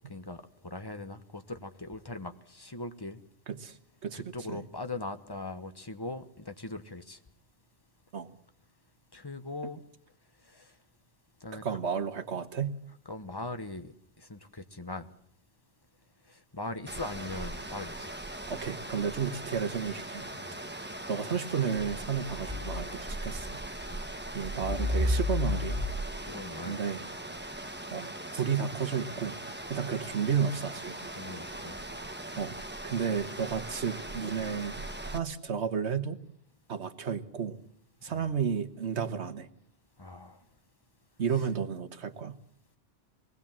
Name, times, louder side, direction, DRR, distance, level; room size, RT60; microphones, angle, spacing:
voice 1, 0.1-3.2 4.1-7.2 9.1-9.8 10.5-10.7 11.4-11.8 13.1-15.1 16.3-18.1 20.4-20.6 23.9-24.0 26.2-26.8 31.1-31.8 38.1-38.3 40.0-40.4, left 2 dB, 20° left, 9 dB, 1.2 m, -40 dB
voice 2, 4.0-4.6 8.1-8.3 11.5-12.7 18.5-20.3 21.1-23.6 24.3-25.9 26.6-27.0 27.9-29.4 29.7-31.0 32.4-32.5 32.8-36.2 36.7-37.6 38.0-39.5 41.2-42.3, right 7 dB, 75° right, 10 dB, 1.5 m, -32 dB
sound 1, 16.9-35.2, equal, 10° right, 1.1 m, -37 dB
23.0 x 19.0 x 7.4 m, 0.70 s
omnidirectional pair, 1.2 m